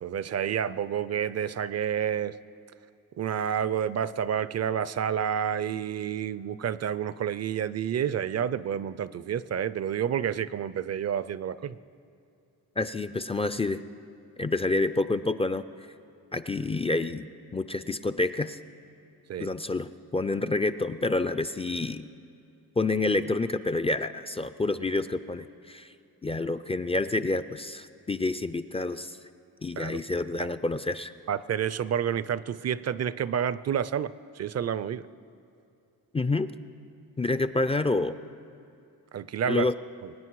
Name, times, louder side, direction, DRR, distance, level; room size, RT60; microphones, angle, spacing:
voice 1, 0.0-2.4 3.2-11.8 19.3-19.5 29.8-30.0 30.4-30.5 31.3-35.1 39.1-39.7 40.0-40.1, right 8 dB, 45° right, 17 dB, 0.5 m, -29 dB
voice 2, 12.8-13.8 14.4-15.7 16.3-18.6 19.4-22.1 22.8-25.9 26.2-29.2 29.6-31.1 36.1-36.5 37.2-38.2 39.5-39.8, left 2 dB, 15° left, 12 dB, 0.3 m, -28 dB
23.0 x 9.5 x 4.7 m, 2.6 s
cardioid pair, 85°, 37 cm